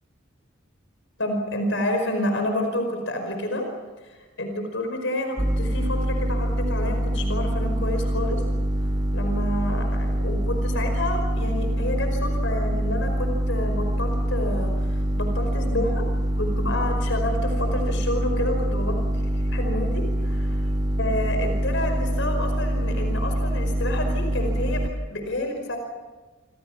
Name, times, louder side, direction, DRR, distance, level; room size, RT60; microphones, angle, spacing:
voice 1, 1.2-3.7 4.0-8.4 8.8-16.1 16.4-20.7 21.0-25.8, left 1 dB, 75° left, 4 dB, 5.1 m, -29 dB
sound 1, 5.4-24.9, equal, 20° right, 1.5 m, -25 dB
29.5 x 26.5 x 6.0 m, 1.3 s
head